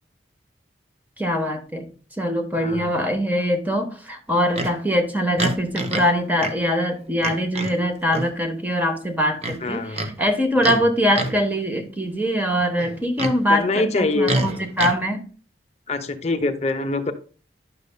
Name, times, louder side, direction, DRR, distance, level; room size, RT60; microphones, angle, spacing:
voice 1, 1.2-1.9 2.2-15.2, equal, 10° right, 5 dB, 1.1 m, -23 dB
voice 2, 2.6-2.9 9.6-10.1 10.6-10.8 13.5-14.4 15.9-17.1, left 2 dB, 35° left, 8 dB, 0.7 m, -24 dB
Livestock farm animals working animals, 4.5-4.7 5.4-6.1 6.4-6.6 7.2-7.7 8.1-8.3 9.4-10.1 10.6-10.8 11.1-11.4 12.8-13.4 14.2-14.9, right 2 dB, 35° right, 0.8 m, -27 dB
10.5 x 6.6 x 2.2 m, 0.38 s
head